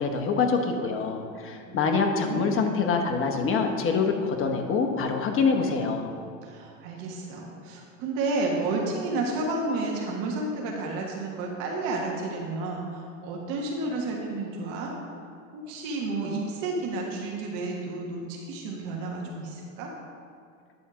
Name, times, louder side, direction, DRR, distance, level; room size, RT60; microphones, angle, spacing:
voice 1, 0.0-6.1, left 5 dB, 30° left, 4 dB, 1.1 m, -25 dB
voice 2, 1.7-2.8 6.4-14.9 15.2-19.9, right 2 dB, 55° right, -1 dB, 1.5 m, -31 dB
10.0 x 4.3 x 6.1 m, 2.3 s
supercardioid pair, 115°, 41 cm